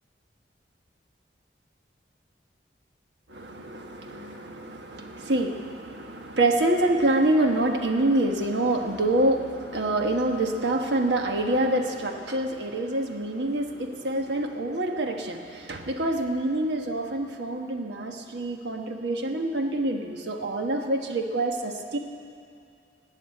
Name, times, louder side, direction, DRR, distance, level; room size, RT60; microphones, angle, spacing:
voice 1, 3.3-22.0, right 1 dB, 80° right, 3 dB, 1.2 m, -26 dB
19.0 x 7.3 x 8.8 m, 2.5 s
head